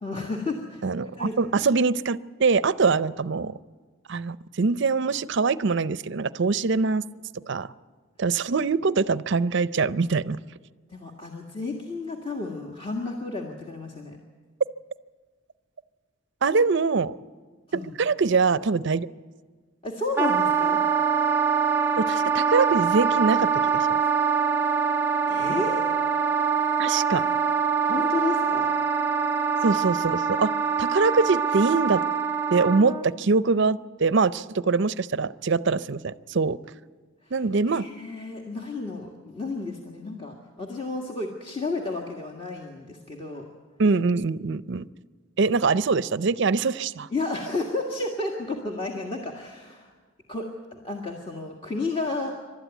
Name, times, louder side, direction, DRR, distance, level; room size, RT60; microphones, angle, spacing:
voice 1, 0.0-1.3 10.9-14.2 17.7-17.9 19.8-20.8 24.6-24.8 25.3-25.8 27.8-28.7 37.2-43.5 47.1-49.9 50.3-52.3, left 3 dB, 25° left, 0 dB, 1.7 m, -32 dB
voice 2, 0.8-3.5 4.1-7.0 7.5-7.7 8.2-10.4 16.4-17.1 17.7-19.1 22.0-23.9 26.8-27.2 29.6-30.5 30.8-32.0 32.5-36.6 37.3-37.8 43.8-44.8 45.4-47.1, right 4 dB, 60° right, 16 dB, 0.6 m, -23 dB
Wind instrument woodwind instrument, 20.2-33.1, right 6 dB, 10° right, 0.6 m, -24 dB
27.5 x 12.5 x 9.3 m, 1.5 s
head